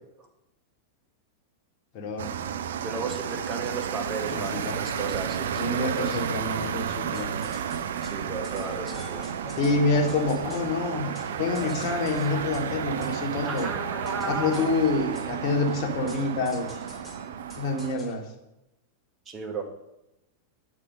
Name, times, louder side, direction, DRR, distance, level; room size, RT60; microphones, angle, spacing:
voice 1, 1.9-2.3 4.3-4.7 5.6-7.4 9.4-11.1 11.4-13.7 14.2-16.7 17.6-18.2, left 3 dB, 40° left, 1 dB, 1.4 m, -27 dB
sound 1, 2.2-17.9, right 8 dB, 60° right, 0.4 m, -32 dB
voice 2, 2.7-6.2 8.0-9.3 13.4-14.8 19.3-19.6, right 4 dB, 25° right, 3 dB, 1.2 m, -34 dB
sound 2, 7.1-18.2, left 1 dB, 5° left, 1.3 m, -45 dB
8.8 x 4.3 x 5.2 m, 0.92 s
figure-of-eight pair, 90°, 0 cm